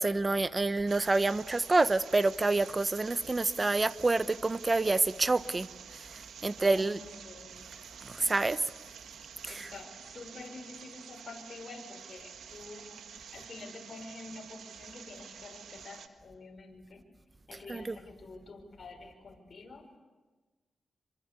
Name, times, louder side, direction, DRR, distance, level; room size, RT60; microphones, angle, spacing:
voice 1, 0.0-5.7 6.4-7.0 8.0-8.6 9.4-9.7 17.7-18.0, right 3 dB, 30° right, 1.0 m, -27 dB
sound 1, 0.9-16.1, right 7 dB, 90° right, 1.7 m, -49 dB
voice 2, 6.6-7.5 8.2-8.5 8.9-9.0 9.5-17.0 17.5-19.9, left 3 dB, 50° left, 5.6 m, -48 dB
26.0 x 25.0 x 8.4 m
cardioid pair, 75°, 0 cm